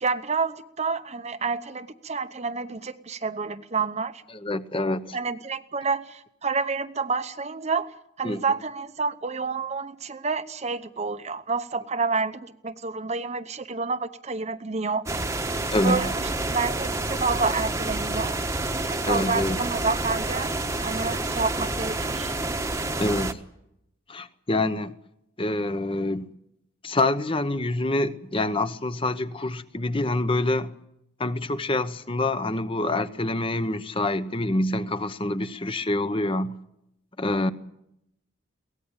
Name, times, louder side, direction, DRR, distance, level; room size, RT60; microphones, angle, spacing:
voice 1, 0.0-4.2 5.1-7.9 8.2-15.0 15.8-18.4 18.8-20.5 20.8-22.3, right 4 dB, 30° right, 0.8 m, -29 dB
voice 2, 4.3-5.2 8.2-8.4 15.7-16.0 19.0-19.6 23.0-23.4 24.1-24.9 25.4-26.3 26.8-30.7 31.2-36.5 37.2-37.5, left 2 dB, 25° left, 0.9 m, -26 dB
sound 1, 15.1-23.3, right 2 dB, 15° right, 1.1 m, -28 dB
23.0 x 18.0 x 8.8 m
head